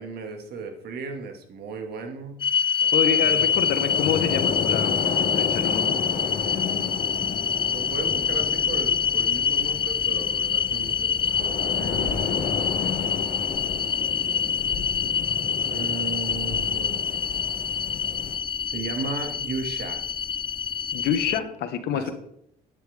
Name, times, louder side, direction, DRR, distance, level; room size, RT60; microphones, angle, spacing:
voice 1, 0.0-2.4 2.8-3.4 5.7-13.6 15.7-17.0 18.7-20.0 21.2-21.4 21.9-22.1, right 4 dB, 70° right, 5 dB, 2.4 m, -36 dB
sound 1, 2.4-21.4, left 7 dB, 30° left, 0.4 m, -26 dB
voice 2, 2.9-5.9 20.9-22.1, left 8 dB, 75° left, 8 dB, 1.6 m, -27 dB
sound 2, 3.2-18.4, left 6 dB, 50° left, 2.0 m, -33 dB
11.0 x 9.8 x 3.7 m, 0.75 s
cardioid pair, 110°, 17 cm